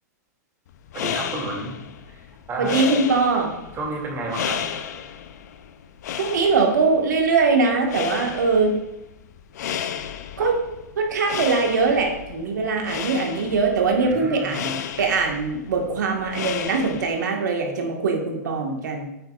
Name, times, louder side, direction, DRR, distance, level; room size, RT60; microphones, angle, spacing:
sound 1, 0.7-17.4, left 8 dB, 70° left, 0.7 m, -33 dB
voice 1, 0.9-1.8 2.1-2.2 2.5-2.8 3.7-4.6 10.4-10.5 13.9-14.6, right 2 dB, 25° right, -1 dB, 2.6 m, -31 dB
voice 2, 2.6-3.5 6.2-8.7 10.4-10.6 11.0-19.1, right 4 dB, 85° right, 2 dB, 1.7 m, -22 dB
9.3 x 7.9 x 2.5 m, 0.90 s
hypercardioid pair, 125°, 9 cm